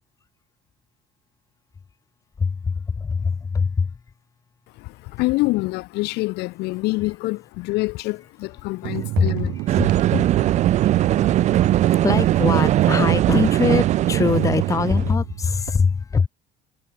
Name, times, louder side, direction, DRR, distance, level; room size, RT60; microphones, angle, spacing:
voice 1, 2.4-3.9 9.2-9.3 9.8-10.3 10.7-16.3, left 5 dB, 20° left, 1.1 m, -23 dB
voice 2, 4.8-9.5, left 22 dB, 80° left, 2.1 m, -26 dB
sound 1, 8.8-15.7, right 22 dB, 75° right, 1.4 m, -27 dB
sound 2, 9.7-15.1, right 13 dB, 45° right, 0.6 m, -20 dB
cardioid pair, 150°, 17 cm